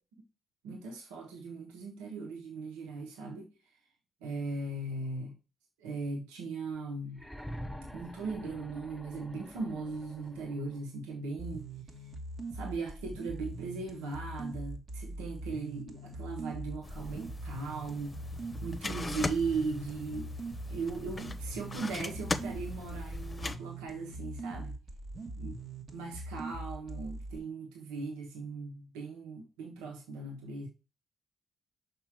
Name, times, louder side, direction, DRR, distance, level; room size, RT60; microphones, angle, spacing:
voice 1, 0.6-3.5 4.2-5.4 5.8-7.2 7.9-11.7 12.5-18.2 18.6-20.3 20.7-24.8 25.4-25.5 25.9-30.7, right 3 dB, 85° right, 1.2 m, -38 dB
sound 1, 7.1-10.9 12.2-12.3, equal, ahead, 1.5 m, -46 dB
sound 2, 11.4-27.4, right 2 dB, 55° right, 1.6 m, -42 dB
sound 3, 16.8-23.6, left 2 dB, 30° left, 0.9 m, -40 dB
5.8 x 5.1 x 4.7 m
hypercardioid pair, 40°, 0 cm